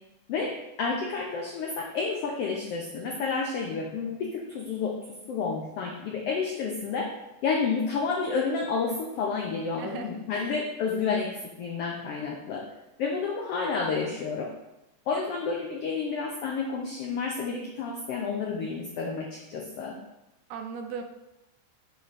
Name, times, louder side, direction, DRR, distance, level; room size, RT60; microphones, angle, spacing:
voice 1, 0.8-4.9 5.3-7.1 7.4-12.6 13.0-14.5 15.1-20.0, left 5 dB, 85° left, 0 dB, 1.3 m, -30 dB
voice 2, 9.8-10.6 20.5-21.0, right 6 dB, 80° right, 5 dB, 1.9 m, -38 dB
9.2 x 3.3 x 4.1 m, 0.94 s
omnidirectional pair, 3.6 m